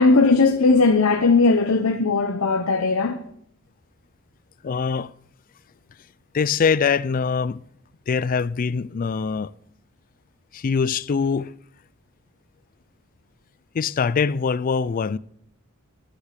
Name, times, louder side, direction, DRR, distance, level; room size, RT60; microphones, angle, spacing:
voice 1, 0.0-3.3, left 3 dB, 70° left, 0.8 m, -18 dB
voice 2, 4.6-5.1 6.3-7.6 8.1-9.5 10.5-11.5 13.7-15.2, left 5 dB, 40° left, 0.4 m, -23 dB
10.0 x 8.3 x 6.6 m
head